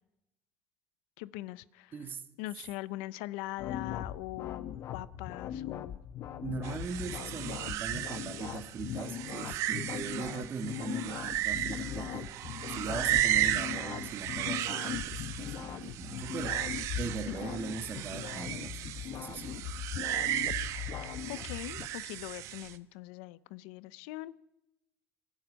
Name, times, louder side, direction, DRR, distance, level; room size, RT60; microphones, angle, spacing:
voice 1, 1.2-2.1 2.4-6.0 17.3-17.4 21.3-24.4, left 18 dB, 90° left, 0.6 m, -41 dB
voice 2, 1.9-2.2 6.4-12.3 12.7-19.6, right 5 dB, 40° right, 1.7 m, -40 dB
sound 1, 3.6-21.9, left 10 dB, 60° left, 1.2 m, -40 dB
sound 2, 6.6-22.8, right 13 dB, 65° right, 1.1 m, -35 dB
22.5 x 12.0 x 9.7 m
cardioid pair, 110°, 5 cm